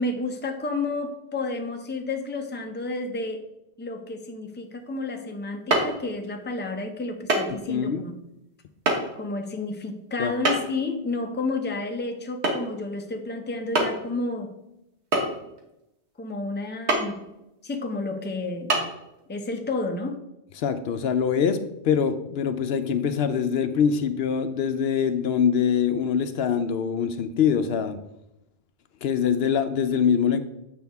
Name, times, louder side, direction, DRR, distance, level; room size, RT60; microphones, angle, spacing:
voice 1, 0.0-3.4 3.8-8.1 9.2-14.5 16.2-17.2 17.6-18.8 19.3-20.2, left 3 dB, 10° left, 4 dB, 0.6 m, -31 dB
sound 1, 5.7-5.9 7.3-7.5 7.8-7.9 8.9-9.0 10.4-10.8 12.4-12.7 13.0-13.1 13.7-14.1 15.1-15.6 16.9-17.1 17.7-17.8 18.7-18.8, right 2 dB, 85° right, 1.6 m, -23 dB
voice 2, 7.7-8.0 10.2-10.3 20.6-21.6 21.8-28.0 29.0-30.4, left 7 dB, 70° left, 10 dB, 0.8 m, -24 dB
7.8 x 6.1 x 3.5 m, 0.87 s
omnidirectional pair, 1.1 m